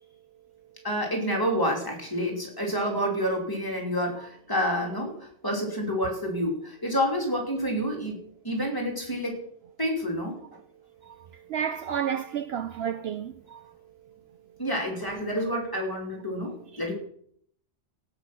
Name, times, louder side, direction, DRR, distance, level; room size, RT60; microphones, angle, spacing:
voice 1, 0.8-5.2 5.4-8.2 8.4-9.4 9.8-10.3 12.9-13.0 14.6-16.9, equal, 15° left, 3.0 m, -28 dB
voice 2, 11.5-13.6, right 8 dB, 65° right, 0.8 m, -31 dB
17.0 x 6.2 x 5.9 m
omnidirectional pair, 1.3 m